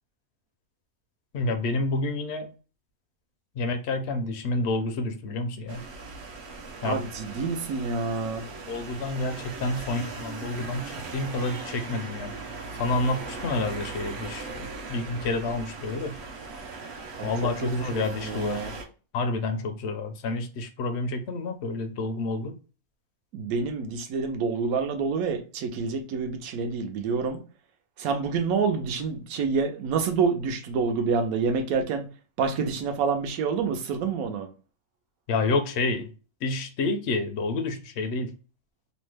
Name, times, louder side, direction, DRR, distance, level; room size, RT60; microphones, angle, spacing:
voice 1, 1.3-2.5 3.6-5.8 6.8-7.0 8.7-12.3 12.8-16.1 17.2-18.8 19.1-22.6 35.3-36.1 36.4-38.3, left 2 dB, 65° left, 0.7 m, -29 dB
sound 1, 5.7-18.8, right 3 dB, 60° right, 0.8 m, -39 dB
voice 2, 6.8-8.4 17.2-17.3 17.6-18.7 23.3-27.4 28.0-32.0 32.4-34.5, right 5 dB, 75° right, 1.1 m, -27 dB
3.0 x 2.1 x 3.2 m
omnidirectional pair, 1.5 m